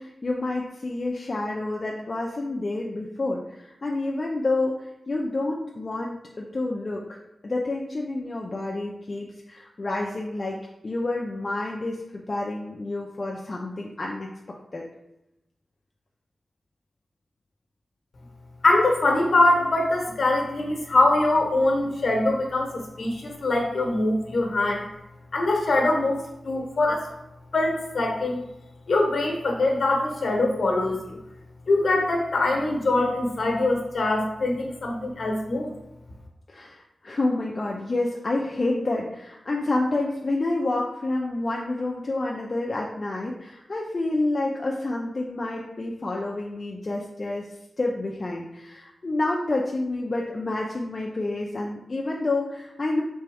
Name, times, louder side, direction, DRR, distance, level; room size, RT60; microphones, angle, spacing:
voice 1, 0.0-7.2 7.4-10.6 10.8-14.9 36.5-47.5 47.8-53.0, left 2 dB, 40° left, -2 dB, 0.5 m, -29 dB
voice 2, 18.6-24.8 25.3-27.1 27.5-28.4 28.9-31.2 31.7-35.7, left 2 dB, 65° left, 0 dB, 1.1 m, -23 dB
4.3 x 3.4 x 3.4 m, 0.87 s
wide cardioid pair, 85°, 0 cm